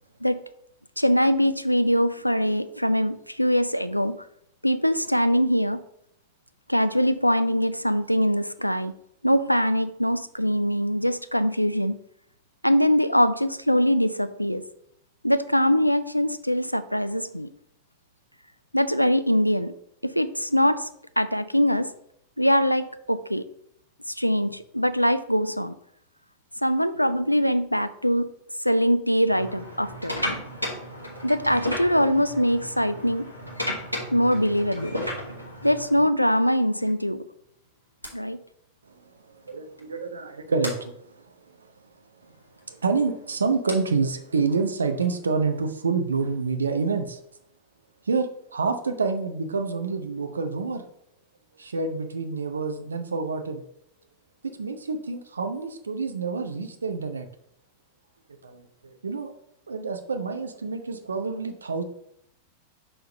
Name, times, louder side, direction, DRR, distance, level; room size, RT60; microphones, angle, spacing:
voice 1, 1.0-4.2 4.6-5.8 6.7-8.9 9.2-12.0 12.6-14.6 15.2-17.5 18.7-19.7 20.0-20.9 21.2-21.9 22.4-23.4 24.1-25.7 26.6-28.3 28.6-30.2 31.2-33.3 34.1-35.0 35.6-37.2 38.1-38.4, equal, 90° left, 12 dB, 0.3 m, -22 dB
sound 1, 29.3-36.1 36.9-37.1 38.0-38.1 39.5-39.6 39.8-40.0 40.6-40.8 42.5-45.7, left 1 dB, 90° right, 1.2 m, -34 dB
voice 2, 39.5-41.0 42.7-47.2 48.1-50.9 51.6-53.6 54.6-57.3 58.4-58.6 59.0-59.3 59.7-61.8, right 4 dB, 75° right, 7 dB, 0.7 m, -27 dB
5.6 x 3.4 x 5.0 m, 0.72 s
figure-of-eight pair, 90°, 0 cm